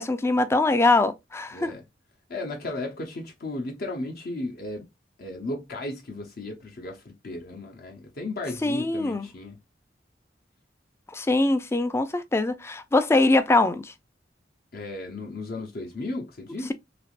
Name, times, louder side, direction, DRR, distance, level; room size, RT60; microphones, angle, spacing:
voice 1, 0.0-1.7 8.6-9.3 11.1-13.9, left 2 dB, 15° left, 0.3 m, -22 dB
voice 2, 1.5-1.8 2.3-4.8 5.2-9.6 14.7-16.7, left 2 dB, 55° left, 0.7 m, -35 dB
3.3 x 2.9 x 2.4 m
head